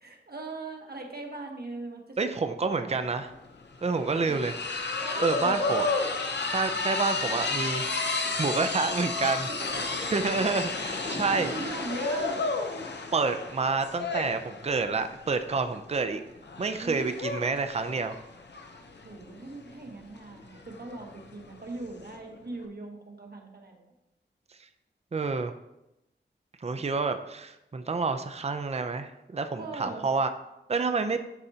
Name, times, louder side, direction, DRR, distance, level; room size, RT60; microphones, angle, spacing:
voice 1, 0.0-3.0 4.1-4.4 5.0-5.8 9.4-10.3 11.0-12.4 16.8-17.2 19.0-23.9 29.5-30.1, right 3 dB, 55° right, 1 dB, 1.1 m, -40 dB
voice 2, 2.2-3.3 3.8-4.5 5.2-5.9 6.5-7.9 8.4-9.5 10.1-11.5 13.1-16.2 16.6-18.1 25.1-25.5 26.6-30.3 30.7-31.2, right 4 dB, 35° right, 8 dB, 0.5 m, -28 dB
sound 1, 3.0-3.1 3.3-22.2, left 3 dB, 65° left, 0.8 m, -32 dB
11.5 x 4.3 x 2.7 m, 0.91 s
wide cardioid pair, 65°, 19 cm